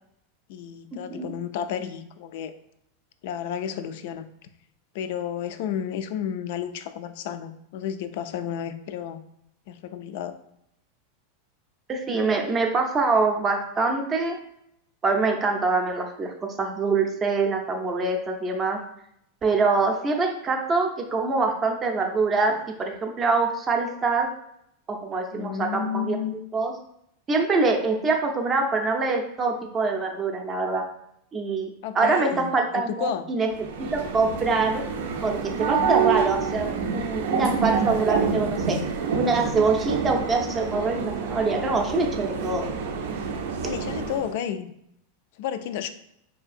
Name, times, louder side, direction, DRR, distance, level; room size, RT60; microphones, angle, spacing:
voice 1, 0.5-2.5 3.2-4.3 4.9-9.2 9.7-10.4 25.3-26.3 31.8-33.3 35.8-35.9 43.6-44.7 45.4-45.9, left 9 dB, 60° left, 10 dB, 0.3 m, -32 dB
voice 2, 11.9-14.4 15.0-18.8 19.4-24.3 24.9-26.2 26.5-26.7 27.3-30.8 31.3-31.7 31.9-33.5 33.8-34.8 35.2-38.8 39.1-42.7, right 3 dB, 20° right, 2 dB, 0.5 m, -24 dB
sound 1, 33.5-44.3, right 6 dB, 75° right, 0.5 m, -27 dB
4.7 x 2.7 x 2.5 m, 0.76 s
supercardioid pair, 155°, 0 cm